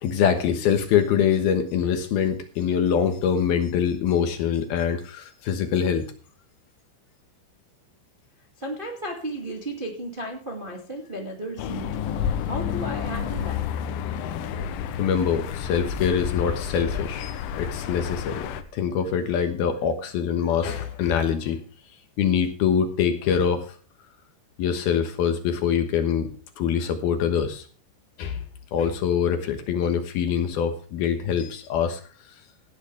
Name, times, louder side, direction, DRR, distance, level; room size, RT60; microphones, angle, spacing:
voice 1, 0.0-6.0 15.0-21.6 22.2-23.8 24.6-26.3 26.6-27.7 28.2-28.4 28.7-32.0 32.3-32.4, left 7 dB, 65° left, 8 dB, 2.8 m, -24 dB
voice 2, 8.6-13.6, right 1 dB, 35° right, 1 dB, 0.8 m, -34 dB
sound 1, 11.6-18.6, left 8 dB, 85° left, 3.5 m, -30 dB
17.5 x 11.0 x 3.3 m, 0.39 s
omnidirectional pair, 5.3 m